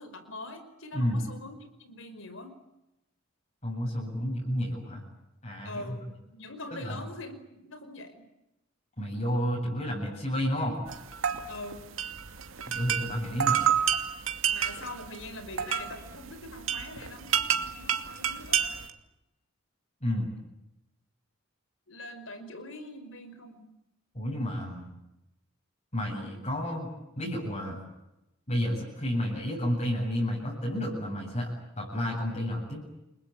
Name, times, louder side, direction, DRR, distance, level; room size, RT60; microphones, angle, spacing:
voice 1, 0.0-2.5 5.6-6.0 6.3-8.2 11.5-11.8 14.5-18.8 21.9-23.6, left 2 dB, 65° left, 10 dB, 5.2 m, -43 dB
voice 2, 3.6-5.0 5.4-6.0 6.7-7.1 9.0-10.8 12.7-13.7 20.0-20.3 24.1-24.9 25.9-26.9 27.2-27.8 28.5-31.5 31.8-32.8, equal, 30° left, -2 dB, 8.0 m, -31 dB
sound 1, 10.9-18.9, right 8 dB, 70° right, 2.5 m, -30 dB
29.5 x 22.0 x 8.9 m, 0.92 s
head